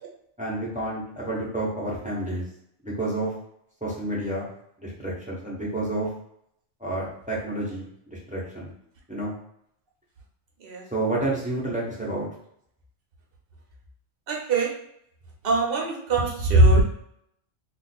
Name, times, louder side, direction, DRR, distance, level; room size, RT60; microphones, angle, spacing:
voice 1, 0.4-2.4 2.8-3.3 3.8-4.5 4.8-6.1 6.8-8.7 9.1-9.3 10.9-12.3, right 2 dB, 10° right, -5 dB, 0.8 m, -29 dB
voice 2, 14.3-14.7 15.4-16.8, right 2 dB, 55° right, -1 dB, 1.0 m, -20 dB
2.5 x 2.5 x 4.1 m, 0.73 s
omnidirectional pair, 1.2 m